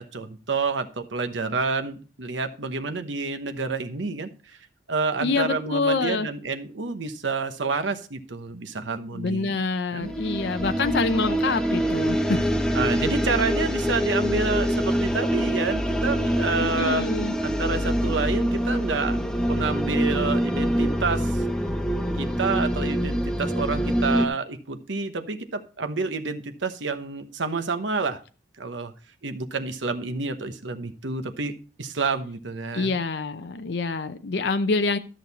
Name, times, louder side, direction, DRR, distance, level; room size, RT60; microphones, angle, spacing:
voice 1, 0.0-4.6 4.9-9.6 9.9-10.1 12.7-17.1 17.4-19.2 19.5-21.4 22.2-28.2 28.6-28.9 29.2-31.5 31.8-33.0, right 4 dB, 80° right, 8 dB, 1.0 m, -29 dB
voice 2, 5.2-6.3 9.1-12.4 16.6-17.3 32.7-35.0, left 3 dB, 65° left, 9 dB, 0.6 m, -26 dB
sound 1, 10.0-24.3, equal, 5° left, 0.8 m, -25 dB
13.0 x 6.5 x 4.1 m, 0.37 s
head